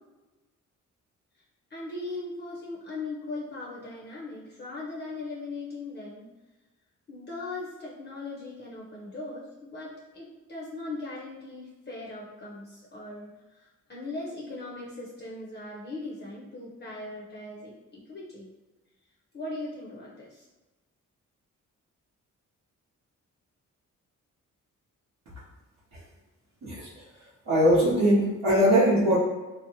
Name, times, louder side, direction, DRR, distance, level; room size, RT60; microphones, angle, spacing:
voice 1, 1.7-6.3 7.1-18.5 19.3-20.5, left 2 dB, 30° left, -5 dB, 0.5 m, -39 dB
voice 2, 26.6-27.0 27.4-29.2, equal, 70° right, -10 dB, 0.8 m, -21 dB
2.6 x 2.0 x 2.7 m, 1.1 s
cardioid pair, 80°, 32 cm